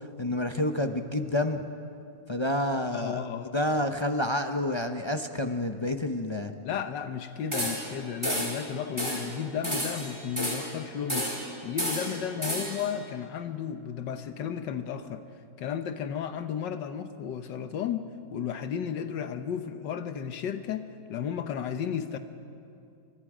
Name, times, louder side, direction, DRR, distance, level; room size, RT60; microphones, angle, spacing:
voice 1, 0.2-1.6 2.3-3.2 3.5-6.5, left 1 dB, 30° left, 6 dB, 0.5 m, -28 dB
voice 2, 2.9-3.6 6.6-11.3 11.6-15.2 15.6-22.2, left 8 dB, 85° left, 9 dB, 1.6 m, -33 dB
sound 1, 7.5-8.0 8.2-8.6 9.0-9.3 9.6-10.7 11.1-11.5 11.8-12.9, equal, 15° right, 4.3 m, -31 dB
30.0 x 24.5 x 5.0 m, 2.5 s
omnidirectional pair, 1.9 m